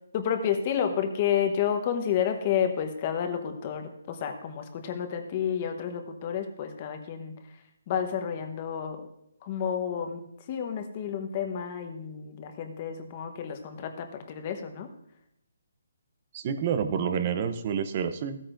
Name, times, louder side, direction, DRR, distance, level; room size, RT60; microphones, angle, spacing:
voice 1, 0.1-7.3 7.9-9.1 9.4-14.9, left 8 dB, 30° left, 6 dB, 1.0 m, -30 dB
voice 2, 16.3-18.4, right 7 dB, 35° right, 9 dB, 0.7 m, -28 dB
15.5 x 9.0 x 2.6 m, 0.77 s
hypercardioid pair, 165°, 0 cm